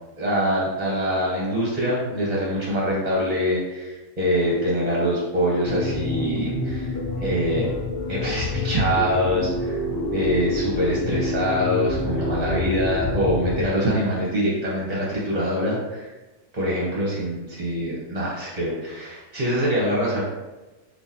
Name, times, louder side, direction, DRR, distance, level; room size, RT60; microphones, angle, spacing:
voice 1, 0.2-7.7 8.1-9.8 10.1-16.1 16.5-20.2, equal, 35° right, -5 dB, 0.8 m, -24 dB
sound 1, 5.7-13.7, left 2 dB, 60° left, 0.8 m, -27 dB
3.7 x 2.8 x 2.8 m, 1.2 s
omnidirectional pair, 1.3 m